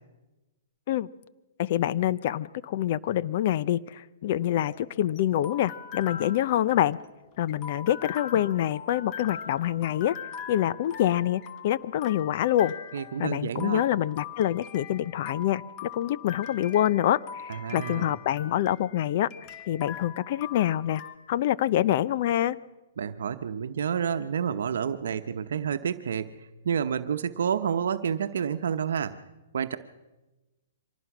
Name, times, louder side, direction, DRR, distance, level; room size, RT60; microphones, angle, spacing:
voice 1, 1.6-7.0 7.4-10.2 10.5-12.7 13.2-19.3 19.7-21.0 21.3-22.6, left 12 dB, 50° left, 17 dB, 0.7 m, -26 dB
sound 1, 4.5-21.2, left 7 dB, 30° left, 1.3 m, -42 dB
voice 2, 12.9-13.8 17.5-18.1 23.0-29.2 29.5-29.8, right 7 dB, 75° right, 9 dB, 0.9 m, -29 dB
25.0 x 19.0 x 6.1 m, 1.1 s
hypercardioid pair, 135°, 0 cm